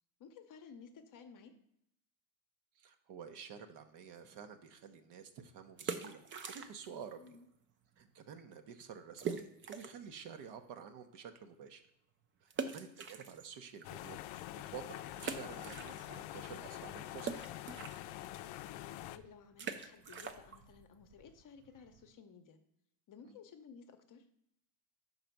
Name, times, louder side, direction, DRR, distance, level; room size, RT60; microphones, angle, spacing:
voice 1, 0.2-1.5 7.1-7.5 12.7-13.0 18.6-22.6 23.1-24.3, left 6 dB, 40° left, 7 dB, 0.7 m, -56 dB
voice 2, 2.8-6.2 6.5-7.4 8.0-11.8 12.4-14.2 14.7-17.4 23.3-23.4, right 7 dB, 55° right, 8 dB, 0.8 m, -50 dB
sound 1, 5.7-7.0 7.3-7.4 8.0-8.1 8.4-8.5 9.2-10.1 10.6-10.7 12.5-13.8 14.3-14.4 15.2-16.4 16.6-22.1, right 6 dB, 25° right, 0.4 m, -44 dB
sound 2, 13.8-19.2, left 14 dB, 70° left, 0.5 m, -46 dB
5.1 x 4.0 x 5.8 m, 0.77 s
cardioid pair, 120°, 50 cm